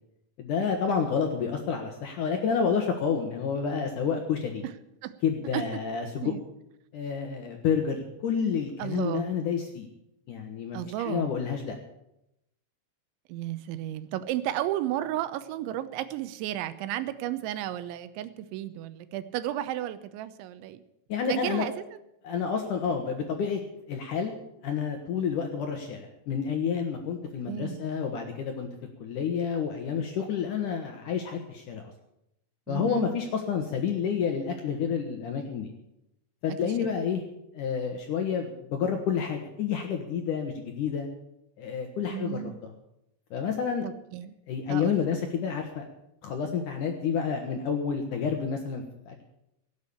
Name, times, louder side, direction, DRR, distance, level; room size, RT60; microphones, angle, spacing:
voice 1, 0.4-4.6 5.2-6.3 6.9-9.9 10.3-10.8 11.1-11.7 21.1-21.7 22.2-23.6 23.9-24.3 24.6-28.7 29.0-31.8 32.7-35.7 36.4-37.2 37.5-41.1 41.6-42.5 43.3-43.9 44.5-45.9 46.2-49.2, left 6 dB, 70° left, 4 dB, 2.0 m, -29 dB
voice 2, 8.8-9.3 10.7-11.4 13.3-20.8 21.3-21.8 27.5-27.9 32.7-33.1 36.5-37.0 42.0-42.5 43.8-44.4 44.7-45.0, right 13 dB, 90° right, 13 dB, 3.2 m, -33 dB
17.0 x 8.2 x 8.5 m, 0.84 s
omnidirectional pair, 5.2 m